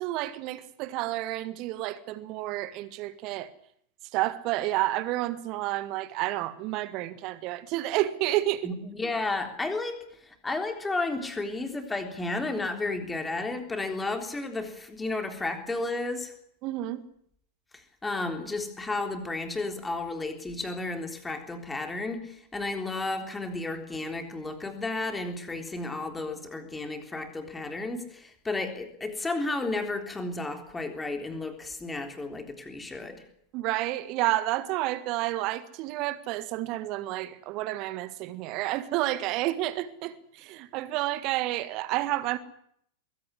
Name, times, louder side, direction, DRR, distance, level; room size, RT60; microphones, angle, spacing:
voice 1, 0.0-3.5 4.1-8.7 16.6-17.0 33.5-42.4, right 16 dB, 40° right, 1.7 m, -30 dB
voice 2, 8.6-16.3 17.7-33.2, left 2 dB, 10° left, 3.6 m, -33 dB
22.0 x 16.0 x 9.9 m
figure-of-eight pair, 90°, 0 cm